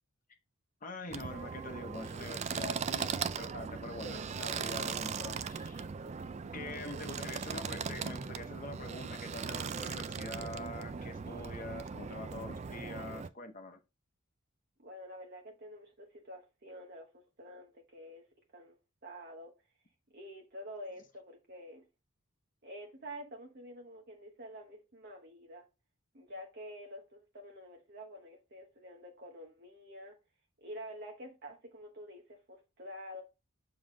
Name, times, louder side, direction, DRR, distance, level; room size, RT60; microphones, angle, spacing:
voice 1, 0.8-5.9 6.5-13.8, left 2 dB, 40° left, 0.9 m, -45 dB
sound 1, 1.1-13.3, right 6 dB, 30° right, 0.3 m, -39 dB
voice 2, 14.8-18.2 18.5-18.8 19.0-19.5 20.1-21.9 22.6-25.7 26.1-30.2 30.6-33.2, equal, 50° right, 1.1 m, -48 dB
7.2 x 3.8 x 3.7 m
head